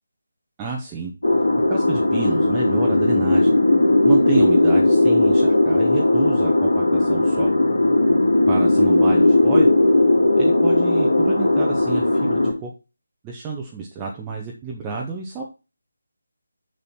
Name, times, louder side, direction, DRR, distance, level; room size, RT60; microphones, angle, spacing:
voice 1, 0.6-1.1 1.7-3.5 4.0-7.5 8.5-9.7 10.3-12.7 13.2-15.4, right 5 dB, 15° right, -2 dB, 1.1 m, -29 dB
sound 1, 1.2-12.5, left 2 dB, 70° left, 2.6 m, -17 dB
6.9 x 6.8 x 4.4 m, 0.30 s
figure-of-eight pair, 155°, 0 cm